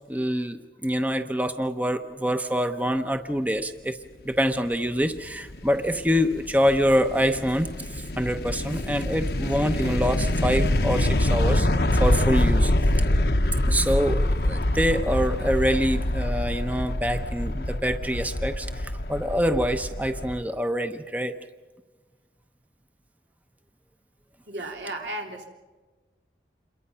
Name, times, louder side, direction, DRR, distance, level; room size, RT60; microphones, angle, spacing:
voice 1, 0.1-4.0 4.2-11.7 12.0-12.7 13.6-21.4, equal, 10° right, 8 dB, 0.8 m, -25 dB
sound 1, 4.9-20.4, left 1 dB, 65° left, 1.0 m, -25 dB
voice 2, 24.5-25.5, right 1 dB, 90° right, 2 dB, 3.5 m, -34 dB
28.0 x 23.0 x 5.7 m, 1.3 s
head